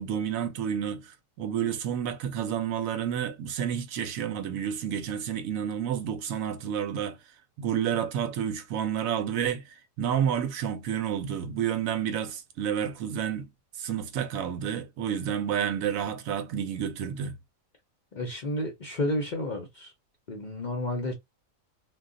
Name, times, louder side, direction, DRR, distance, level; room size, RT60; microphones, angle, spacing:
voice 1, 0.0-7.2 7.6-13.5 13.8-17.4, right 9 dB, 75° right, 1.0 m, -30 dB
voice 2, 18.1-19.9 20.3-21.1, left 1 dB, 45° left, 0.6 m, -31 dB
2.3 x 2.2 x 3.7 m
omnidirectional pair, 1.5 m